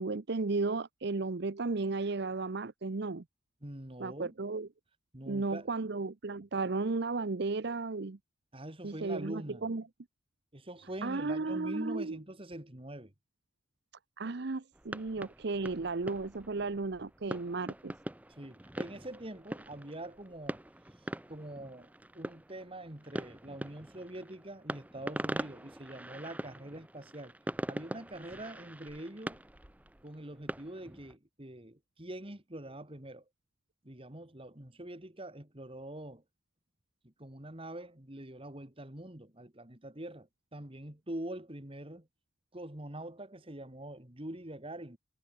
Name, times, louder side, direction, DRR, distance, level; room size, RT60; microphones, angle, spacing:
voice 1, 0.0-3.2 4.0-4.7 5.3-8.2 8.8-9.8 11.0-12.2 14.2-17.9, right 3 dB, 60° right, 0.7 m, -34 dB
voice 2, 3.6-4.3 5.1-5.7 8.5-9.7 10.5-13.1 18.4-20.6 21.3-27.3 27.7-29.4 30.0-33.2 33.8-36.2 37.0-42.1 42.5-45.0, right 1 dB, 30° right, 2.4 m, -44 dB
sound 1, 14.7-31.1, right 1 dB, 10° right, 0.7 m, -43 dB
head